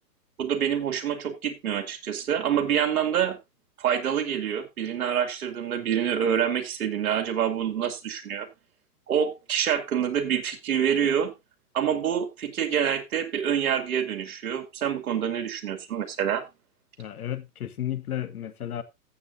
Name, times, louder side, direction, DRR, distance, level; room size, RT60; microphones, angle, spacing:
voice 1, 0.4-3.4 3.8-8.5 9.1-11.3 11.7-16.4, right 8 dB, 60° right, 2.6 m, -26 dB
voice 2, 17.0-18.8, left 11 dB, 65° left, 1.5 m, -33 dB
14.5 x 8.3 x 2.7 m
hypercardioid pair, 150°, 49 cm